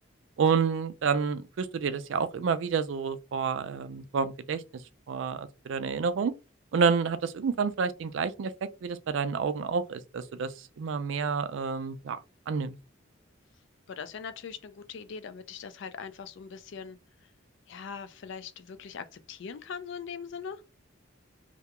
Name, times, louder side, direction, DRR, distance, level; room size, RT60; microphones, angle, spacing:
voice 1, 0.4-4.6 5.1-6.3 6.7-12.2 12.5-12.8, right 5 dB, 65° right, 0.4 m, -29 dB
voice 2, 13.9-17.0 17.7-20.6, left 6 dB, 65° left, 0.4 m, -41 dB
2.4 x 2.2 x 2.8 m
head